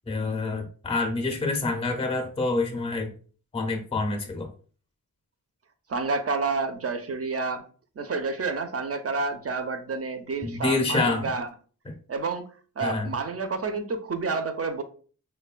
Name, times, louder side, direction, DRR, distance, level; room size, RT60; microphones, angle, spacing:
voice 1, 0.1-3.1 3.5-4.5 10.4-11.3 11.9-12.0 12.8-13.1, left 3 dB, 15° left, 3 dB, 0.5 m, -27 dB
voice 2, 5.9-7.6 8.0-11.5 12.1-12.5 12.8-14.8, right 4 dB, 40° right, 8 dB, 0.4 m, -29 dB
3.0 x 2.1 x 2.3 m, 0.41 s
wide cardioid pair, 60°, 38 cm